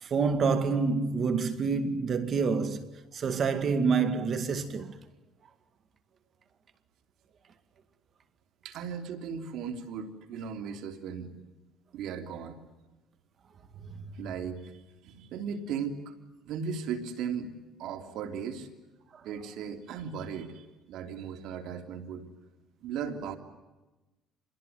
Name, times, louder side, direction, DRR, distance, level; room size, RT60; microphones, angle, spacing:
voice 1, 0.0-2.9 3.1-5.0 13.8-14.1, right 5 dB, 45° right, 2.1 m, -27 dB
voice 2, 8.6-11.4 11.9-12.6 14.1-16.1 16.4-18.7 19.2-22.3 22.8-23.4, right 6 dB, 70° right, 3.3 m, -37 dB
26.5 x 21.5 x 9.5 m
cardioid pair, 105°, 0 cm